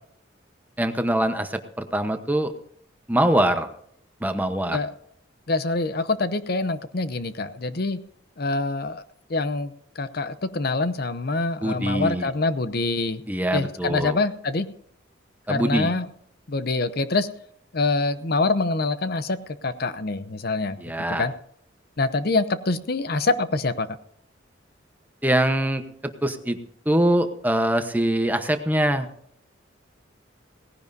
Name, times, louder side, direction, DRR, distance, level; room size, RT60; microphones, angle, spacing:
voice 1, 0.8-2.5 3.1-3.7 4.2-4.8 11.6-12.3 13.3-14.2 15.5-15.9 20.8-21.3 25.2-26.6 26.8-29.1, right 1 dB, 10° right, 7 dB, 1.0 m, -23 dB
voice 2, 5.5-8.0 8.4-9.0 9.3-13.2 13.5-14.7 15.5-16.1 16.5-17.3 17.7-20.8 21.2-21.3 22.0-23.9, left 3 dB, 50° left, 12 dB, 0.7 m, -25 dB
18.0 x 16.0 x 2.7 m, 0.67 s
head